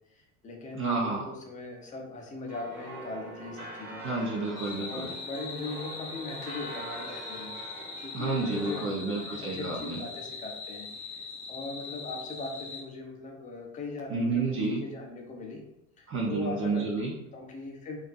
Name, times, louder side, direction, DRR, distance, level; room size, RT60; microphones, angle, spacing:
voice 1, 0.1-4.0 4.8-7.6 8.0-15.6 16.0-16.8 17.3-18.0, left 3 dB, 20° left, 1 dB, 0.5 m, -40 dB
voice 2, 0.7-1.3 4.0-5.1 8.1-10.0 14.1-14.9 16.1-17.1, right 3 dB, 30° right, -2 dB, 0.5 m, -30 dB
sound 1, 2.5-8.8, right 2 dB, 90° right, 0.7 m, -44 dB
sound 2, 4.6-12.8, left 4 dB, 55° left, 0.8 m, -41 dB
2.4 x 2.4 x 2.2 m, 0.83 s
figure-of-eight pair, 65°, 41 cm